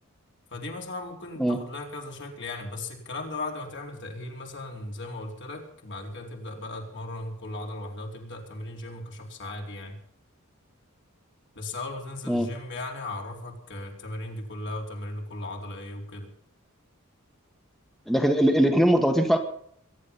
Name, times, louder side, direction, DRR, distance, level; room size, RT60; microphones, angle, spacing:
voice 1, 0.5-10.0 11.5-16.3, left 2 dB, 60° left, 1 dB, 4.2 m, -37 dB
voice 2, 18.1-19.4, equal, ahead, 4 dB, 1.4 m, -21 dB
22.0 x 11.0 x 5.6 m, 0.63 s
head